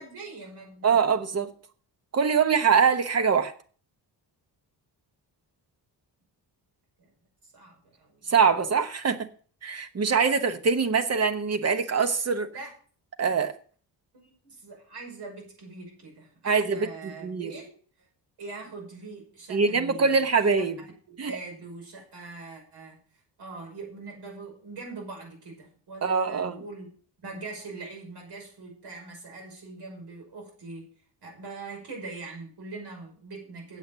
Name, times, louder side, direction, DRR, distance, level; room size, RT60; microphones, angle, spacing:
voice 1, 0.0-1.0 7.0-7.1 7.5-8.3 12.5-12.7 14.1-17.7 18.0-18.1 18.4-20.3 20.8-23.0 23.4-26.9 27.2-30.9 31.2-33.8, right 3 dB, 70° right, 0 dB, 5.9 m, -42 dB
voice 2, 0.8-1.5 2.1-3.5 8.3-9.3 9.6-12.5 13.2-13.5 16.4-17.5 19.5-20.8 21.2-21.3 26.0-26.6, right 5 dB, 35° right, 9 dB, 1.1 m, -23 dB
8.4 x 8.0 x 6.8 m, 0.44 s
wide cardioid pair, 165°, 42 cm